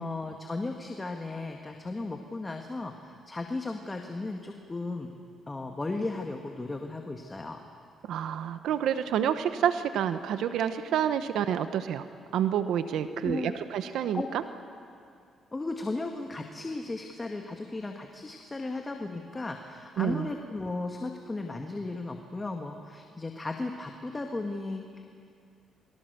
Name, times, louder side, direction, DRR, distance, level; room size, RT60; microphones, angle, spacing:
voice 1, 0.0-5.1 5.5-7.6 13.0-13.5 14.1-14.3 15.5-25.2, left 2 dB, 20° left, 3 dB, 1.9 m, -35 dB
voice 2, 8.1-12.1 12.3-14.4 20.0-20.3, right 9 dB, 80° right, 10 dB, 1.0 m, -28 dB
29.0 x 23.0 x 6.8 m, 2.4 s
cardioid pair, 90°, 0 cm